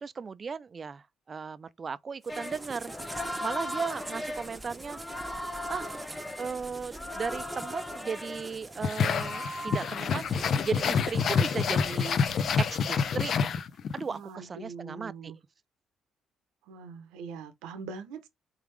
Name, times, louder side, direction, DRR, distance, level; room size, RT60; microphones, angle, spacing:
voice 1, 0.0-2.9 3.4-5.0 5.7-5.9 6.4-12.2 12.6-13.3 13.9-15.3, right 5 dB, 40° right, 0.4 m, -36 dB
sound 1, 2.2-12.9, right 2 dB, 15° right, 0.9 m, -46 dB
sound 2, 2.3-13.1, left 1 dB, 15° left, 1.1 m, -40 dB
sound 3, 8.8-14.0, left 6 dB, 65° left, 0.5 m, -27 dB
voice 2, 14.1-15.4 16.7-18.3, right 5 dB, 90° right, 0.7 m, -42 dB
3.5 x 3.4 x 3.3 m
supercardioid pair, 65°, 0 cm